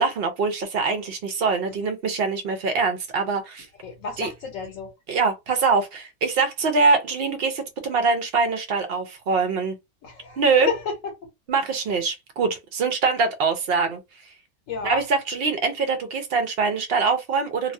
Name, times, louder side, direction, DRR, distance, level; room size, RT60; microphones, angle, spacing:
voice 1, 0.0-3.7 4.2-4.3 5.1-9.8 10.4-10.7 11.5-14.0 14.8-17.7, right 4 dB, 60° right, 0.7 m, -23 dB
voice 2, 3.8-4.9 10.0-10.9 14.7-15.0, left 6 dB, 80° left, 1.1 m, -31 dB
2.3 x 2.2 x 2.5 m
omnidirectional pair, 1.4 m